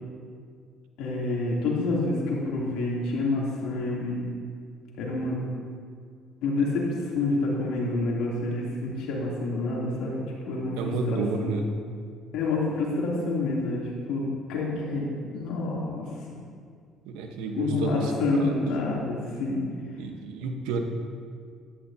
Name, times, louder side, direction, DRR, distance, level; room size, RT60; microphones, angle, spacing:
voice 1, 1.0-4.2 5.0-5.4 6.4-6.8 7.1-10.7 11.1-11.5 12.3-13.8 14.1-16.0 17.6-19.6, left 2 dB, 75° left, -4 dB, 3.0 m, -28 dB
voice 2, 10.8-11.7 17.1-18.1 18.4-18.5 20.0-20.8, right 3 dB, 80° right, 4 dB, 1.1 m, -30 dB
14.0 x 11.5 x 2.8 m, 2.1 s
supercardioid pair, 75°, 0 cm